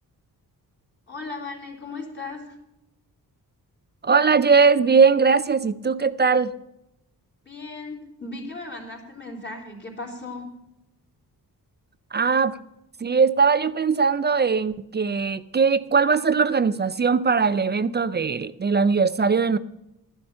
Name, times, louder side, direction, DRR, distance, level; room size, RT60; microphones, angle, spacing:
voice 1, 1.1-2.6 7.4-10.5, left 3 dB, 30° left, -1 dB, 3.6 m, -36 dB
voice 2, 4.0-6.5 12.1-12.6 13.0-19.6, right 5 dB, 30° right, 15 dB, 0.4 m, -20 dB
13.0 x 10.5 x 5.5 m, 0.88 s
wide cardioid pair, 145°, 36 cm